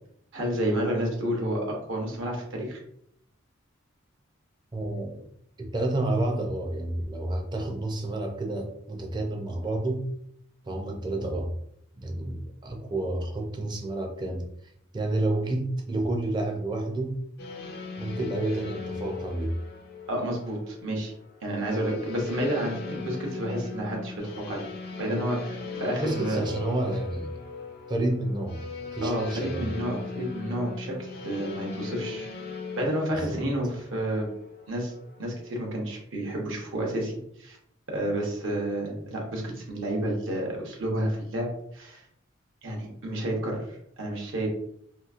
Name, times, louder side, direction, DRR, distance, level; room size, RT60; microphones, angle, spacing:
voice 1, 0.3-2.8 20.1-21.1 21.4-24.7 25.0-26.4 29.0-32.3 32.7-34.3 34.7-34.9 35.2-37.6 37.9-42.0 42.6-43.6 44.0-44.5, right 1 dB, 75° right, -1 dB, 0.9 m, -30 dB
voice 2, 4.7-5.2 5.6-10.1 10.6-11.5 11.9-17.2 18.0-19.6 26.0-27.3 27.9-29.7 33.1-33.4, right 2 dB, 20° right, 1 dB, 0.4 m, -30 dB
sound 1, 17.4-35.5, left 4 dB, 50° left, 0.4 m, -39 dB
2.9 x 2.6 x 2.4 m, 0.72 s
head